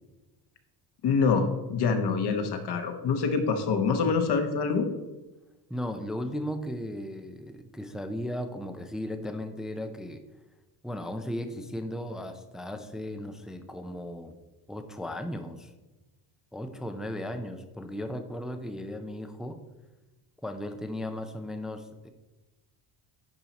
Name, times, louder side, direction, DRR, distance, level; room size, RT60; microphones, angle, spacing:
voice 1, 1.0-4.9, left 5 dB, 50° left, 6 dB, 1.1 m, -25 dB
voice 2, 5.7-10.2 10.8-14.4 14.7-15.7 16.5-19.6 20.4-22.1, left 1 dB, ahead, 8 dB, 0.3 m, -36 dB
10.5 x 4.5 x 4.1 m, 1.1 s
cardioid pair, 130°, 49 cm